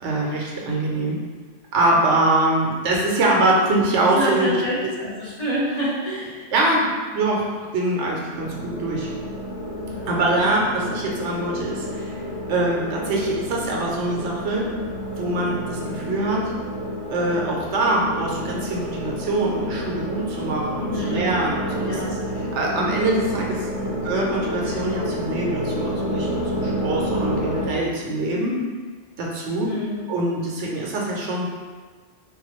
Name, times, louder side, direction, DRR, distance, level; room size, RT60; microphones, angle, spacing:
voice 1, 0.0-1.2 1.7-4.9 6.5-9.1 10.1-12.2 12.5-14.7 15.2-16.5 17.1-22.2 22.5-23.7 24.0-28.6 29.2-29.7 30.1-31.5, right 2 dB, 70° right, -2 dB, 0.9 m, -23 dB
voice 2, 4.1-6.5 9.9-10.1 10.9-11.0 20.9-21.3 21.8-22.1 23.7-24.0 29.6-30.0, equal, 40° left, -9 dB, 0.7 m, -28 dB
sound 1, 8.3-27.7, equal, 85° left, 1.1 m, -29 dB
3.5 x 2.2 x 3.0 m, 1.4 s
omnidirectional pair, 1.3 m